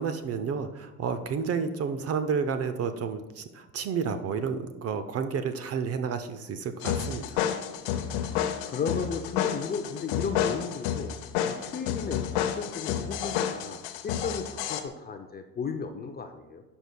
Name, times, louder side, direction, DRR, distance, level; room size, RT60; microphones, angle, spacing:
voice 1, 0.0-7.4, right 6 dB, 30° right, 10 dB, 0.5 m, -31 dB
sound 1, 6.8-14.8, left 9 dB, 60° left, 0.8 m, -30 dB
voice 2, 8.1-11.2 11.4-16.6, left 5 dB, 20° left, 6 dB, 0.5 m, -35 dB
11.0 x 5.4 x 2.2 m, 1.1 s
hypercardioid pair, 70°, 48 cm